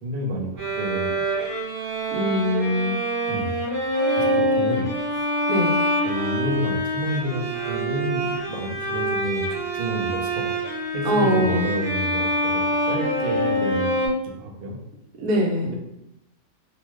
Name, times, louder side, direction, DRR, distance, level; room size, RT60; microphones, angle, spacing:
voice 1, 0.0-1.2 3.3-3.6 4.2-5.2 6.0-14.8, right 1 dB, 60° right, 0 dB, 0.5 m, -30 dB
Bowed string instrument, 0.6-14.1, equal, 25° right, 0.8 m, -25 dB
voice 2, 2.1-3.0 5.5-5.8 11.0-11.6 15.2-15.8, equal, 80° right, -1 dB, 1.1 m, -22 dB
2.8 x 2.2 x 3.1 m, 0.86 s
omnidirectional pair, 1.5 m